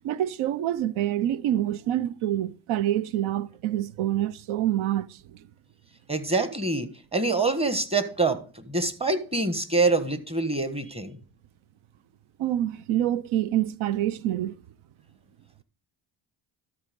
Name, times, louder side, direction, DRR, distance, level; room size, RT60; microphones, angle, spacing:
voice 1, 0.0-5.2 12.4-14.6, right 12 dB, 75° right, 0.7 m, -26 dB
voice 2, 6.1-8.4 8.7-11.2, right 3 dB, 10° right, 1.4 m, -25 dB
12.5 x 4.3 x 5.2 m
cardioid pair, 80°, 49 cm